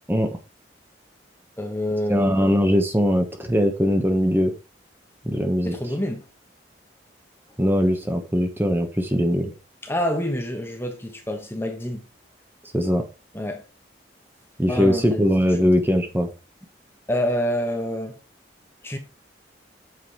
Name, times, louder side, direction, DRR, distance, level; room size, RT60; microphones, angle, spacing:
voice 1, 1.6-2.3 5.6-6.2 9.8-12.1 13.3-13.6 14.7-15.3 15.6-15.7 17.1-18.2 18.8-19.0, left 1 dB, 15° left, 1.2 m, -27 dB
voice 2, 2.1-4.5 5.2-5.7 7.6-9.5 12.7-13.0 14.6-16.3, equal, 10° right, 1.2 m, -21 dB
7.8 x 5.3 x 4.7 m
head